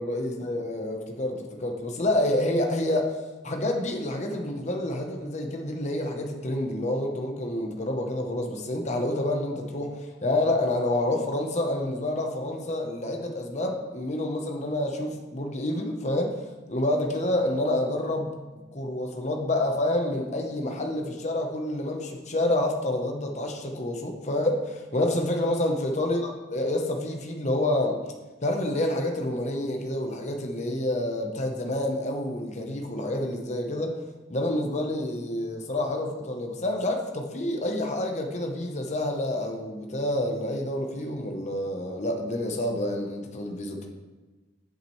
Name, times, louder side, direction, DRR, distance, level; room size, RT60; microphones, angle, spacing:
voice 1, 0.0-3.2 3.4-16.4 16.7-18.3 18.7-28.0 28.4-34.0 34.3-43.9, left 1 dB, 35° left, 3 dB, 0.9 m, -28 dB
8.1 x 7.5 x 3.2 m, 1.2 s
head